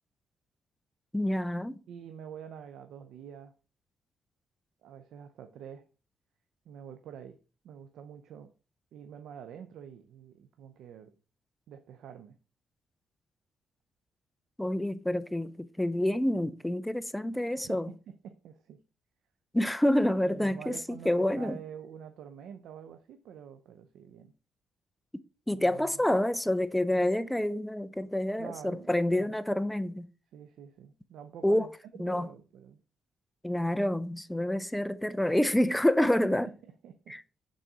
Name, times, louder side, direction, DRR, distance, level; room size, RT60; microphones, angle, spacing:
voice 1, 1.1-1.8 14.6-17.9 19.5-20.8 21.1-21.6 25.5-30.1 31.4-31.7 32.0-32.3 33.4-36.5 37.1-37.2, left 1 dB, 5° left, 0.5 m, -28 dB
voice 2, 1.9-3.5 4.8-5.9 6.7-7.4 7.6-8.5 8.9-11.1 11.7-12.4 17.6-18.8 20.2-24.3 25.5-26.0 28.4-29.4 30.3-32.8 36.5-37.2, right 8 dB, 75° right, 0.5 m, -47 dB
6.2 x 4.1 x 4.8 m
cardioid pair, 90°, 0 cm